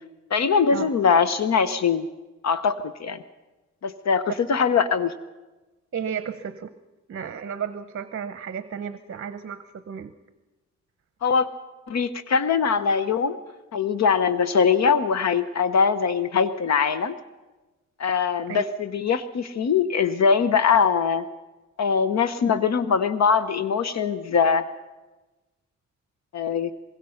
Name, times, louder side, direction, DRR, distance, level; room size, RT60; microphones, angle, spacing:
voice 1, 0.3-2.1 2.4-3.2 3.8-5.1 11.2-11.5 11.9-13.4 13.7-17.2 18.0-21.3 21.8-24.6 26.3-26.7, left 6 dB, 65° left, 13 dB, 0.9 m, -22 dB
voice 2, 5.9-6.7 7.1-10.1 18.5-18.6, right 7 dB, 45° right, 11 dB, 0.9 m, -33 dB
24.5 x 21.5 x 5.7 m, 1.1 s
wide cardioid pair, 135°, 29 cm